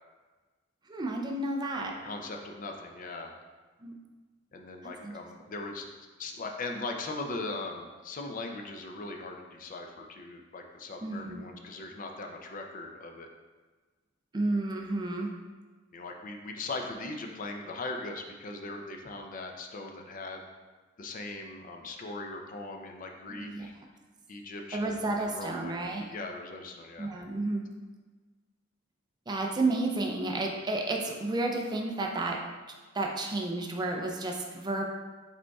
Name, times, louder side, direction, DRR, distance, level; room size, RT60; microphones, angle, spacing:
voice 1, 0.9-1.9 3.8-4.0 5.0-5.1 11.0-11.5 14.3-15.3 23.3-23.7 24.7-26.1 27.0-27.6 29.3-32.4 32.9-34.8, right 2 dB, 20° right, 1 dB, 0.4 m, -31 dB
voice 2, 1.8-3.3 4.5-5.9 6.2-13.3 15.9-20.5 21.0-23.8 24.3-27.1, left 2 dB, 40° left, 3 dB, 0.5 m, -40 dB
5.1 x 4.2 x 2.3 m, 1.3 s
head